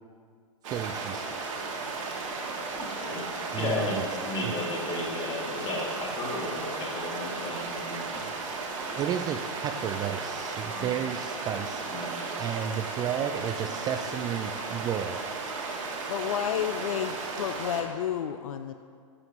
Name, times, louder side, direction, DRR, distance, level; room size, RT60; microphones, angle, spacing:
sound 1, 0.6-17.8, right 4 dB, 65° right, 1.6 m, -35 dB
voice 1, 0.7-1.3 1.5-1.6 3.5-4.0 4.4-4.5 8.9-11.8 12.4-15.2, right 9 dB, 20° right, 7 dB, 0.3 m, -32 dB
voice 2, 2.7-3.3 3.6-8.2 10.7-11.1 11.9-12.4, left 2 dB, 30° left, -3 dB, 2.5 m, -34 dB
voice 3, 16.1-18.7, left 9 dB, 75° left, 9 dB, 0.5 m, -31 dB
12.5 x 7.9 x 3.0 m, 2.1 s
hypercardioid pair, 120°, 18 cm